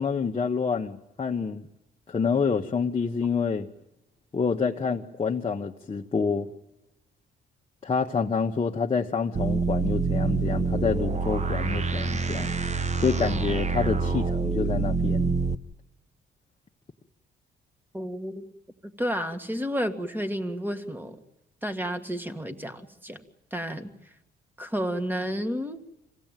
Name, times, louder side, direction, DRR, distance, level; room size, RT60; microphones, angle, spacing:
voice 1, 0.0-1.7 2.1-3.7 4.3-6.5 7.8-12.5 13.0-15.3, left 5 dB, 30° left, 2 dB, 1.2 m, -27 dB
sound 1, 9.4-15.6, right 4 dB, 35° right, 1.0 m, -26 dB
voice 2, 17.9-18.5 19.0-21.2 21.6-23.2 23.5-23.9 24.6-25.8, equal, 10° right, 8 dB, 2.0 m, -31 dB
26.0 x 16.5 x 9.2 m, 0.94 s
cardioid pair, 90°, 20 cm